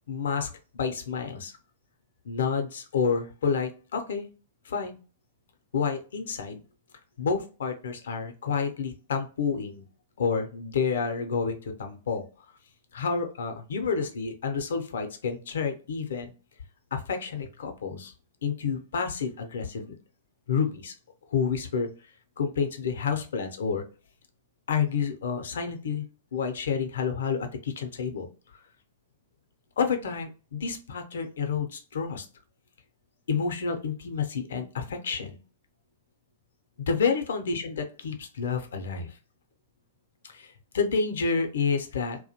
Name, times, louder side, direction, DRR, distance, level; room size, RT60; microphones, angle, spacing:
voice 1, 0.1-1.5 2.2-4.3 4.7-5.0 5.7-6.6 7.2-9.9 10.2-12.2 12.9-16.3 16.9-18.1 18.4-19.9 20.5-20.9 21.3-21.9 22.4-23.8 24.7-26.1 26.3-28.3 29.8-32.3 33.3-35.4 36.8-39.1 40.2-42.2, left 5 dB, 70° left, 6 dB, 0.5 m, -29 dB
2.3 x 2.1 x 2.7 m, 0.36 s
figure-of-eight pair, 110°, 0 cm